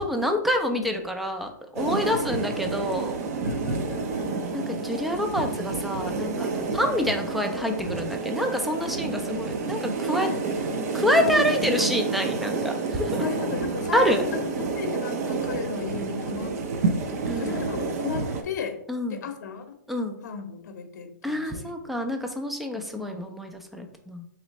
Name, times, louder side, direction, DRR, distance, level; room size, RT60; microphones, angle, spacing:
voice 1, 0.0-3.2 4.5-10.3 10.9-12.7 13.0-13.3 13.9-14.3 17.3-17.6 18.9-19.3 19.9-20.2 21.2-24.2, equal, ahead, 4 dB, 0.4 m, -27 dB
sound 1, 1.8-18.4, right 4 dB, 50° right, 0.7 m, -29 dB
voice 2, 2.0-2.6 3.4-4.4 10.2-10.3 11.2-11.9 13.1-16.6 17.4-18.8 19.1-19.6 20.2-21.7, left 6 dB, 60° left, 6 dB, 0.7 m, -35 dB
3.1 x 3.1 x 4.0 m, 0.70 s
hypercardioid pair, 145°, 10 cm